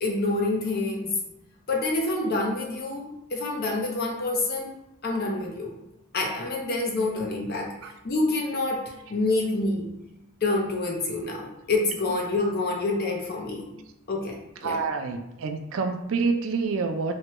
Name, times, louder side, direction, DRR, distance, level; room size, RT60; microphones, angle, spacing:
voice 1, 0.0-1.1 1.7-5.8 6.1-7.7 8.0-9.9 10.4-13.7 14.1-14.8, left 2 dB, 45° left, 0 dB, 0.6 m, -27 dB
voice 2, 14.6-17.1, right 4 dB, 60° right, 6 dB, 0.3 m, -27 dB
3.1 x 2.2 x 2.9 m, 0.92 s
head